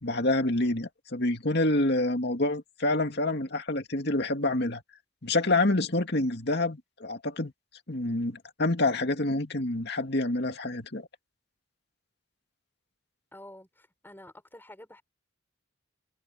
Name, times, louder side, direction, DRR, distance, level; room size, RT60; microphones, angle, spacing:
voice 1, 0.0-4.8 5.2-7.5 7.9-11.1, left 2 dB, 55° left, 2.4 m, -27 dB
voice 2, 13.3-15.0, left 1 dB, 10° left, 5.2 m, -49 dB
head